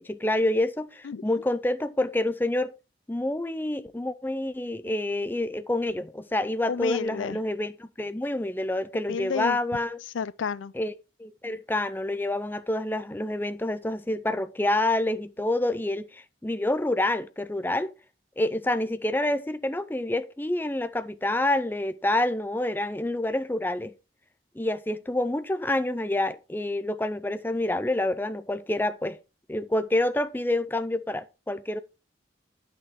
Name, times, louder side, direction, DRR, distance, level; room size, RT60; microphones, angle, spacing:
voice 1, 0.0-2.7 3.1-10.0 10.8-10.9 11.2-17.9 18.4-23.9 24.6-29.2 29.5-31.8, left 1 dB, 10° left, 0.4 m, -27 dB
voice 2, 1.0-1.4 6.7-7.4 9.1-9.6 10.0-10.7, left 6 dB, 90° left, 0.4 m, -31 dB
9.0 x 6.0 x 4.6 m
head